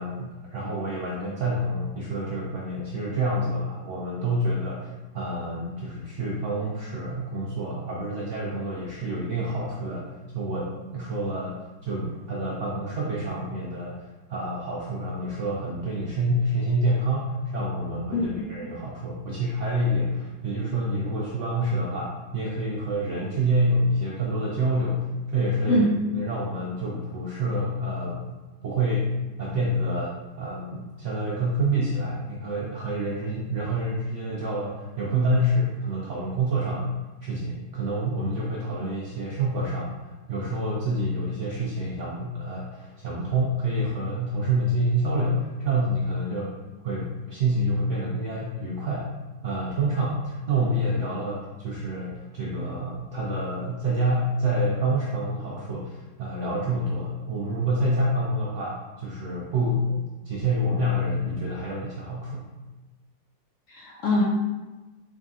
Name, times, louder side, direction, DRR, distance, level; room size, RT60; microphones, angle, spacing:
voice 1, 0.0-11.5 11.8-14.0 14.3-25.8 26.1-28.4 28.6-29.1 29.4-36.9 37.2-46.5 46.8-49.1 49.4-62.5, right 1 dB, 75° right, -4 dB, 0.7 m, -27 dB
voice 2, 18.1-18.4 25.7-25.9 63.7-64.2, left 1 dB, 70° left, -4 dB, 0.7 m, -23 dB
3.9 x 3.5 x 2.6 m, 1.2 s
omnidirectional pair, 1.8 m